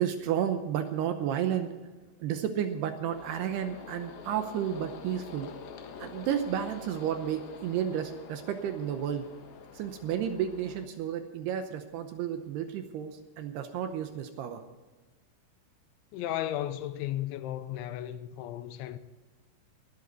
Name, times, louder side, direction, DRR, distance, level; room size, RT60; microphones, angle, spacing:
voice 1, 0.0-1.7 2.2-5.5 6.0-9.3 9.7-14.6, right 9 dB, 75° right, 2.5 m, -32 dB
sound 1, 3.1-10.9, left 6 dB, 65° left, 2.8 m, -46 dB
voice 2, 16.1-19.0, left 12 dB, 90° left, 3.2 m, -34 dB
20.0 x 12.0 x 4.0 m
omnidirectional pair, 5.4 m